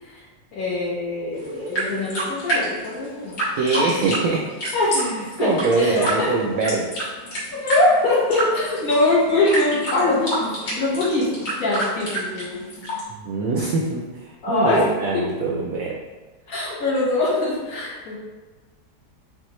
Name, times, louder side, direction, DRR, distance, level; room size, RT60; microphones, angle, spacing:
voice 1, 0.5-3.4 4.7-5.1 5.4-6.3 7.6-10.5 10.8-11.3 11.6-12.6 14.4-14.8 15.1-15.2 16.5-18.2, left 2 dB, 60° left, -6 dB, 1.5 m, -22 dB
sound 1, 1.3-13.0, right 1 dB, 85° left, 2.3 m, -28 dB
voice 2, 3.6-4.4 4.9-6.9 13.2-16.0, right 3 dB, 70° right, -1 dB, 0.8 m, -23 dB
5.6 x 2.5 x 3.1 m, 1.3 s
omnidirectional pair, 1.9 m